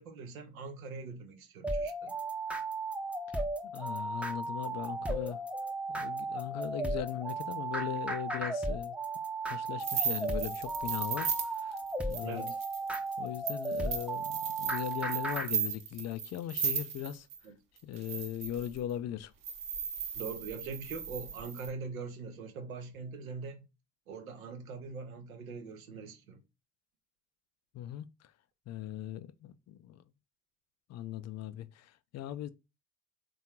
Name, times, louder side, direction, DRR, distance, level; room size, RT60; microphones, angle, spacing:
voice 1, 0.0-2.1 12.2-12.6 17.4-17.6 20.1-23.7 24.1-26.4, right 4 dB, 85° right, 0.7 m, -42 dB
sound 1, 1.6-15.5, right 2 dB, 5° right, 0.6 m, -35 dB
voice 2, 3.6-5.4 5.9-9.0 9.5-11.8 12.0-12.5 13.2-17.3 17.8-19.3 27.7-28.1 28.7-30.0 30.9-32.5, left 11 dB, 40° left, 0.4 m, -39 dB
Metal Chain, 9.8-17.4 17.9-18.8 19.4-21.7, right 6 dB, 55° right, 0.9 m, -36 dB
3.6 x 2.3 x 4.2 m
figure-of-eight pair, 45°, 40 cm